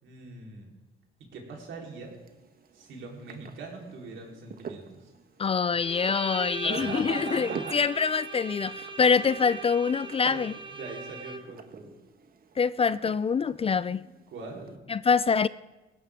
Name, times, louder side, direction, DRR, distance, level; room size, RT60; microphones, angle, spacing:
voice 1, 0.0-0.7 1.3-2.2 2.7-5.1 6.6-7.8 9.2-9.3 10.3-10.4 10.7-12.0 14.3-14.8, right 4 dB, 75° right, -1 dB, 3.8 m, -41 dB
sound 1, 1.9-14.8, right 6 dB, 50° right, 1.3 m, -47 dB
voice 2, 5.4-10.5 12.6-14.1 14.9-15.5, left 5 dB, 30° left, 18 dB, 0.4 m, -25 dB
Bowed string instrument, 5.8-11.7, right 3 dB, 25° right, 1.2 m, -40 dB
19.0 x 16.5 x 3.6 m, 1.1 s
cardioid pair, 90°, 20 cm